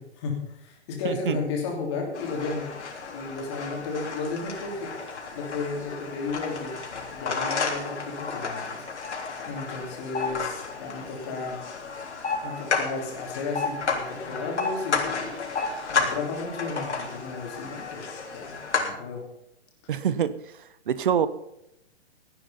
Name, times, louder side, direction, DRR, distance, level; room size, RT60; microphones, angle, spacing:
voice 1, 0.0-2.8 3.1-4.9 5.3-6.8 7.1-9.1 9.4-11.6 12.4-15.6 15.9-19.2, left 4 dB, 25° left, 0 dB, 2.9 m, -33 dB
voice 2, 1.0-1.4 19.9-20.3 20.9-21.3, right 8 dB, 50° right, 15 dB, 0.9 m, -24 dB
sound 1, 2.1-18.9, left 4 dB, 90° left, 3.5 m, -32 dB
16.0 x 9.3 x 5.7 m, 0.81 s
hypercardioid pair, 170°, 34 cm